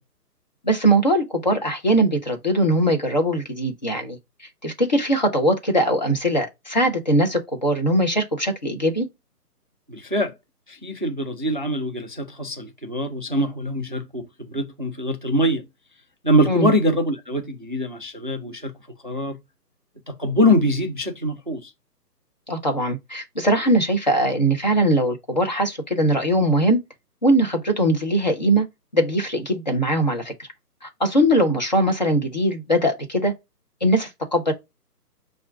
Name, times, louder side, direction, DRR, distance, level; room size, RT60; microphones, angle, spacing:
voice 1, 0.6-4.2 4.6-9.1 16.5-16.7 22.5-26.8 27.2-28.6 28.9-30.5 30.8-33.3 33.8-34.5, right 1 dB, 30° left, 0.6 m, -21 dB
voice 2, 9.9-10.3 10.7-15.6 16.2-18.7 19.0-19.4 20.1-21.7, equal, 35° right, 0.4 m, -23 dB
5.4 x 2.3 x 2.3 m
figure-of-eight pair, 145°, 48 cm